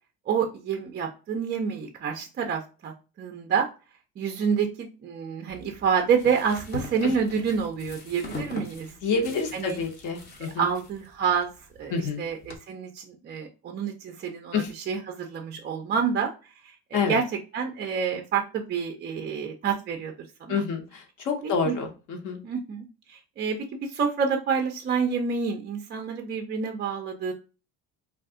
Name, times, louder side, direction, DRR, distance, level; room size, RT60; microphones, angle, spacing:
voice 1, 0.3-2.9 3.2-3.7 4.2-9.0 9.5-9.8 10.4-11.5 11.8-17.2 17.5-20.1 20.4-20.6 21.4-21.7 22.4-27.3, right 6 dB, 30° right, 3 dB, 0.4 m, -28 dB
sound 1, 5.5-12.6, left 2 dB, 25° left, 0.7 m, -42 dB
voice 2, 9.0-10.7 11.9-12.2 14.5-14.7 16.9-17.2 20.5-22.4, left 5 dB, 50° left, 3 dB, 0.9 m, -28 dB
2.5 x 2.4 x 3.5 m, 0.32 s
cardioid pair, 140°, 37 cm